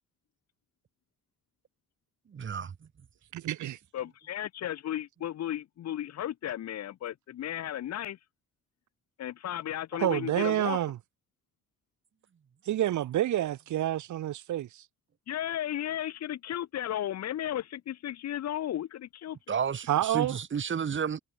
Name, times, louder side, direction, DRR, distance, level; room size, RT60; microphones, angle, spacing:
voice 1, 2.3-2.7 19.5-21.2, right 7 dB, 40° right, 2.3 m, -31 dB
voice 2, 3.3-3.8 10.0-11.0 12.6-14.8 19.9-20.4, right 13 dB, 80° right, 1.5 m, -28 dB
voice 3, 3.9-8.2 9.2-10.8 15.3-19.4, left 11 dB, 65° left, 0.9 m, -34 dB
cardioid pair, 125°, 29 cm